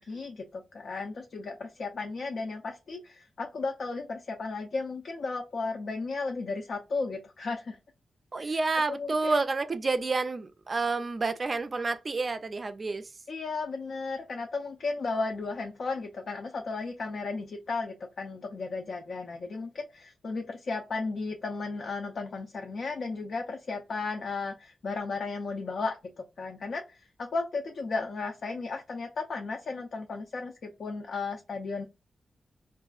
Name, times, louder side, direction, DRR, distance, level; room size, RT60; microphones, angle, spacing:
voice 1, 0.0-7.8 8.4-8.6 8.9-9.4 13.3-31.8, left 3 dB, 60° left, 0.6 m, -34 dB
voice 2, 8.3-13.1, right 3 dB, 35° right, 0.4 m, -29 dB
4.6 x 2.5 x 2.3 m
wide cardioid pair, 125°, 0 cm